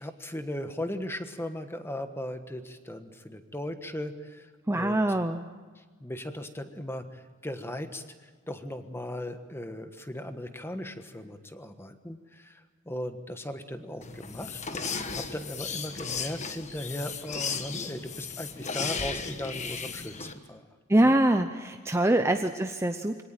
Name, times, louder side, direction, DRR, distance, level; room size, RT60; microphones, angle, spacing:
voice 1, 0.0-5.2 5.8-20.6 21.0-21.1 22.1-22.4, left 1 dB, 10° left, 8 dB, 1.3 m, -38 dB
voice 2, 4.7-5.4 20.9-23.2, right 1 dB, 10° right, 7 dB, 0.7 m, -24 dB
sound 1, 14.0-20.3, left 5 dB, 35° left, 1.4 m, -35 dB
24.5 x 18.0 x 9.0 m, 1.4 s
head